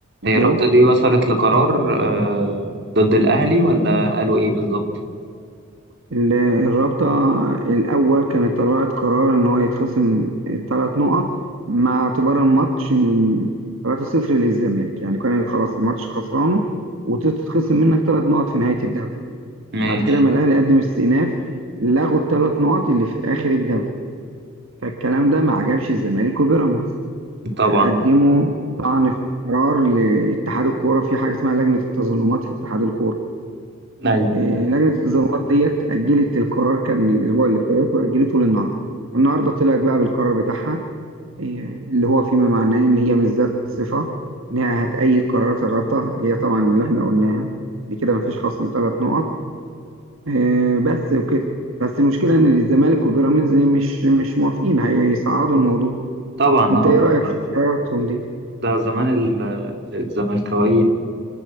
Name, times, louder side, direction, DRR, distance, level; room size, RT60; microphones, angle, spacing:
voice 1, 0.2-4.8 19.7-20.2 27.6-27.9 34.0-34.3 56.4-57.0 58.6-60.8, right 1 dB, 50° right, 4 dB, 2.5 m, -18 dB
voice 2, 6.1-11.3 11.7-13.5 13.8-16.6 17.1-19.1 19.8-21.3 21.8-23.9 24.8-26.9 27.6-28.5 28.8-29.2 29.4-33.2 34.3-38.7 39.1-40.8 41.4-44.1 44.5-47.5 47.9-49.3 50.3-51.5 51.8-56.0 56.7-58.2, right 1 dB, 65° right, 4 dB, 1.4 m, -19 dB
25.5 x 12.5 x 8.8 m, 2.4 s
head